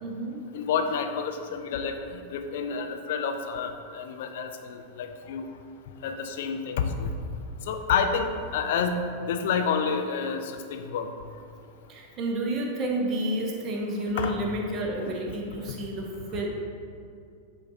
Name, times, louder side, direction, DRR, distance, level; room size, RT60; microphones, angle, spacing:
voice 1, 0.0-0.4 11.9-16.5, right 1 dB, 30° right, 0 dB, 1.0 m, -30 dB
voice 2, 0.5-5.5 6.0-7.1 7.7-8.3 8.5-9.0 9.3-11.1 14.2-14.4 15.1-15.2, left 6 dB, 55° left, 6 dB, 0.5 m, -29 dB
9.3 x 3.9 x 2.8 m, 2.4 s
figure-of-eight pair, 90°, 0 cm